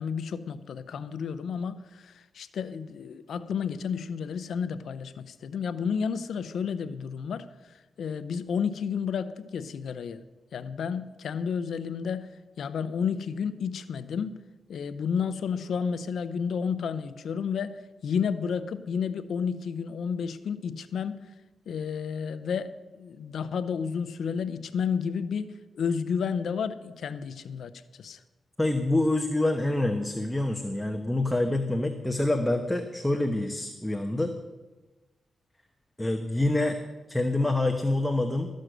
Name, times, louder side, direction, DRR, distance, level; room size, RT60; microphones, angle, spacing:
voice 1, 0.0-7.5 8.0-10.2 10.5-12.3 12.6-14.4 14.7-21.3 21.7-28.2, left 6 dB, 80° left, 13 dB, 0.7 m, -31 dB
voice 2, 28.6-34.3 36.0-36.8 37.1-38.5, left 2 dB, 10° left, 4 dB, 1.0 m, -26 dB
13.5 x 6.5 x 7.8 m, 1.2 s
cardioid pair, 65°, 0 cm